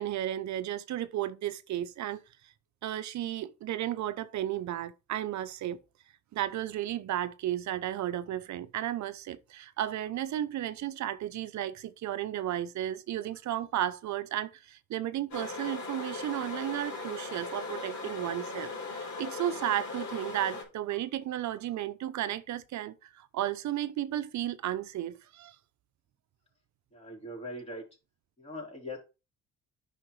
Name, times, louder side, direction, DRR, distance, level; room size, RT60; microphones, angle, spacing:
voice 1, 0.0-2.2 2.8-5.8 6.3-25.6, right 12 dB, 70° right, 0.7 m, -34 dB
sound 1, 15.3-20.6, left 3 dB, 70° left, 3.7 m, -38 dB
voice 2, 26.9-27.8 28.4-29.0, left 1 dB, 20° left, 3.9 m, -41 dB
9.8 x 5.8 x 3.2 m
cardioid pair, 90°, 30 cm